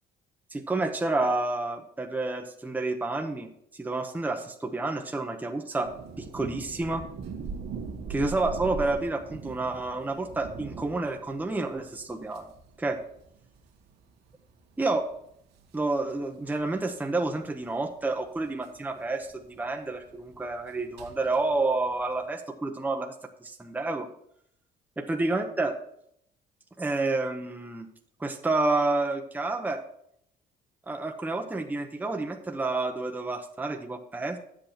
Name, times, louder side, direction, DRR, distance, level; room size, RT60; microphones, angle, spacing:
voice 1, 0.5-3.5 3.8-5.9 6.2-7.0 8.1-12.5 12.8-13.0 14.8-15.0 15.7-23.1 23.4-24.1 25.0-25.7 26.8-27.9 28.2-29.8 30.9-34.4, right 2 dB, 10° right, 3 dB, 0.8 m, -29 dB
sound 1, 5.8-22.2, right 5 dB, 80° right, 1.6 m, -42 dB
10.5 x 7.9 x 4.4 m, 0.71 s
cardioid pair, 110°, 17 cm